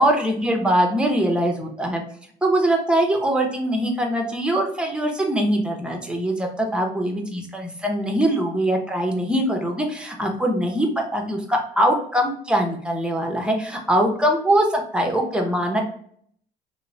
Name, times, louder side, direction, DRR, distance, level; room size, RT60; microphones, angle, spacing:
voice 1, 0.0-2.0 2.4-15.8, right 1 dB, 5° right, 2 dB, 0.6 m, -22 dB
2.8 x 2.0 x 2.6 m, 0.63 s
cardioid pair, 110°, 17 cm